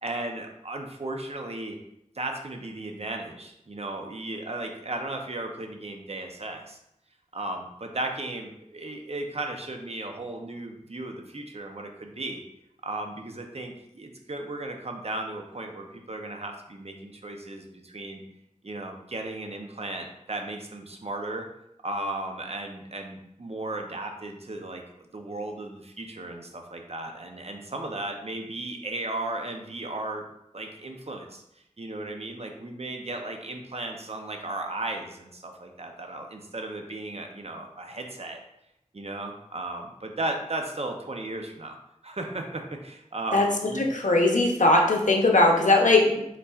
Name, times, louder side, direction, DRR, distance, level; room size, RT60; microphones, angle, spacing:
voice 1, 0.0-1.8 2.1-6.8 7.3-12.4 12.8-18.2 18.6-21.5 21.8-24.8 25.1-30.3 30.5-31.4 31.8-38.4 38.9-41.8 42.0-43.9, right 2 dB, 55° right, 3 dB, 0.6 m, -35 dB
voice 2, 43.9-46.4, left 2 dB, 80° left, 1 dB, 0.7 m, -20 dB
5.5 x 3.8 x 2.4 m, 0.81 s
wide cardioid pair, 50°, 13 cm